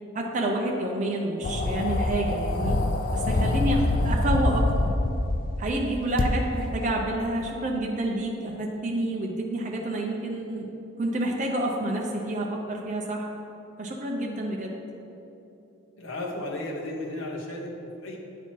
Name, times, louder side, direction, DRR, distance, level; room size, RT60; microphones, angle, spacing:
voice 1, 0.1-2.8 3.1-4.9 5.6-10.7 11.0-13.3 13.8-14.7, right 1 dB, 35° right, -1 dB, 0.6 m, -29 dB
sound 1, 1.4-5.6 6.2-6.3, left 2 dB, 40° left, 0.4 m, -25 dB
voice 2, 16.0-18.2, left 1 dB, 65° left, -1 dB, 0.9 m, -34 dB
9.0 x 4.3 x 4.5 m, 2.9 s
head